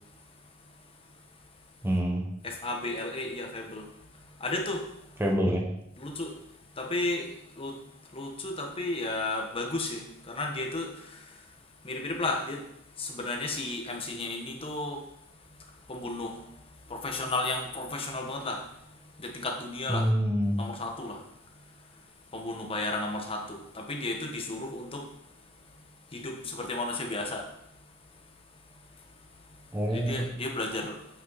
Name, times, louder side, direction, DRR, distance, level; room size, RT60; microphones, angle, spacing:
voice 1, 1.8-2.3 5.2-5.6 19.9-20.6 29.7-30.3, equal, 10° right, 1 dB, 1.0 m, -26 dB
voice 2, 2.4-3.9 4.4-4.8 6.0-6.3 6.8-7.3 7.5-7.7 8.1-10.9 11.8-12.6 13.0-15.0 15.9-16.4 16.9-18.6 19.2-20.1 20.6-21.2 22.3-25.0 26.1-27.4 29.9-31.0, left 2 dB, 30° left, 2 dB, 1.2 m, -33 dB
8.6 x 8.2 x 4.0 m, 0.81 s
head